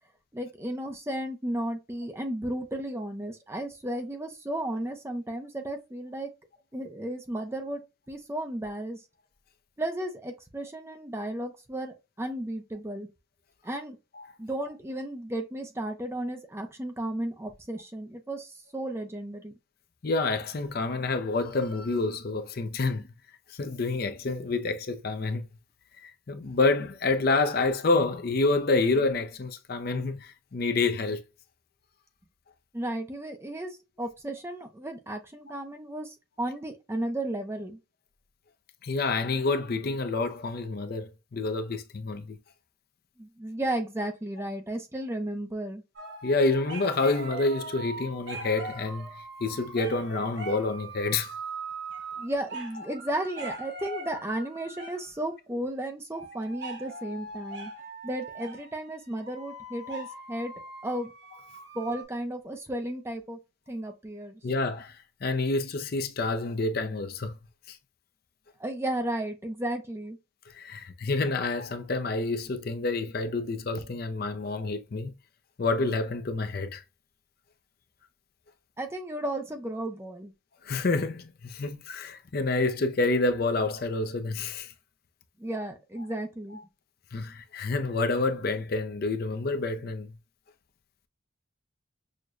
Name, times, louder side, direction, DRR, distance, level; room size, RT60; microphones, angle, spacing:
voice 1, 0.3-6.3 6.7-7.8 8.1-9.0 9.8-13.1 13.6-14.0 14.4-19.5 32.7-37.8 43.2-45.8 52.2-57.7 58.0-60.5 60.8-61.1 61.7-63.4 63.7-64.4 68.6-70.2 78.8-80.3 85.4-86.6, right 1 dB, 10° right, 0.5 m, -34 dB
voice 2, 20.0-23.1 23.5-25.5 26.0-31.2 38.8-42.4 46.2-49.1 49.4-51.3 64.4-67.3 67.7-67.8 70.5-75.1 75.6-76.8 80.6-84.7 87.1-90.1, left 3 dB, 45° left, 0.5 m, -28 dB
sound 1, 46.0-55.2 56.1-62.0, right 3 dB, 55° right, 1.2 m, -41 dB
6.3 x 2.1 x 2.4 m
head